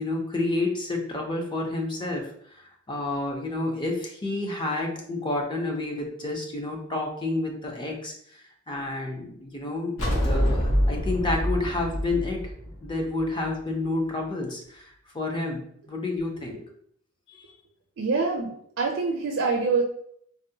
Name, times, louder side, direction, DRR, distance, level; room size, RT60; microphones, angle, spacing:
voice 1, 0.0-8.4 8.7-10.0 10.2-12.4 12.8-16.6 17.3-17.4, left 2 dB, 25° left, 1 dB, 0.5 m, -30 dB
sound 1, 10.0-13.4, equal, 75° left, 0.9 m, -25 dB
voice 2, 18.0-19.8, right 4 dB, 65° right, 0 dB, 0.4 m, -25 dB
3.6 x 2.1 x 2.7 m, 0.67 s
head